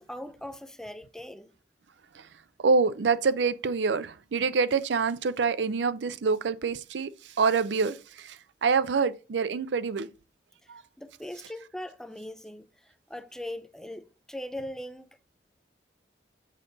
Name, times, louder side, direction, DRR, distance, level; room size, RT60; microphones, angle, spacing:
voice 1, 0.0-1.5 10.6-10.7 11.0-15.3, left 1 dB, 5° left, 0.4 m, -40 dB
voice 2, 2.6-7.1 7.4-8.4 8.6-10.1 10.7-10.8, right 5 dB, 90° right, 0.5 m, -26 dB
6.5 x 5.2 x 3.9 m
head